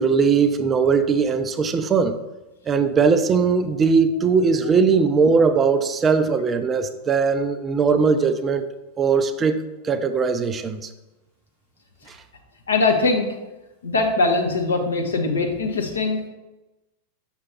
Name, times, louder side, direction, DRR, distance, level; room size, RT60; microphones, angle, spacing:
voice 1, 0.0-2.1 2.7-8.7 9.0-10.9 12.1-12.2, right 5 dB, 20° right, 10 dB, 0.4 m, -20 dB
voice 2, 12.7-13.3 13.8-16.3, left 3 dB, 70° left, 3 dB, 1.0 m, -21 dB
6.6 x 6.2 x 2.9 m, 1.0 s
figure-of-eight pair, 90°, 0 cm